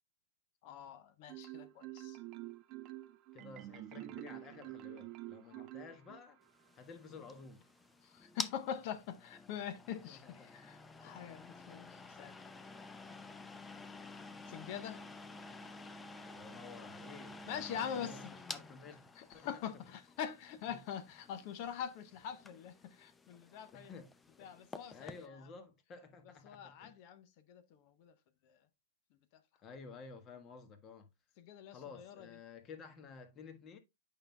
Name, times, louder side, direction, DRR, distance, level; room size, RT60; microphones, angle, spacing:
voice 1, 0.6-2.2 5.5-5.7 8.0-12.4 14.5-15.0 17.5-18.2 19.2-23.9 24.4-25.1 26.4-28.1 28.4-28.6 31.4-32.3, left 8 dB, 50° left, 0.7 m, -44 dB
Marimba xylophone, 1.3-6.4, right 16 dB, 40° right, 0.5 m, -47 dB
voice 2, 3.3-6.4 6.8-7.7 10.1-10.5 11.0-11.1 16.3-19.5 19.8-20.0 20.7-20.8 23.7-24.1 24.4-24.5 24.9-27.0 29.6-31.1 31.7-33.8, left 5 dB, 30° left, 1.4 m, -53 dB
sound 1, 6.5-25.3, left 3 dB, 10° left, 0.6 m, -50 dB
8.7 x 5.5 x 2.3 m
hypercardioid pair, 115°, 0 cm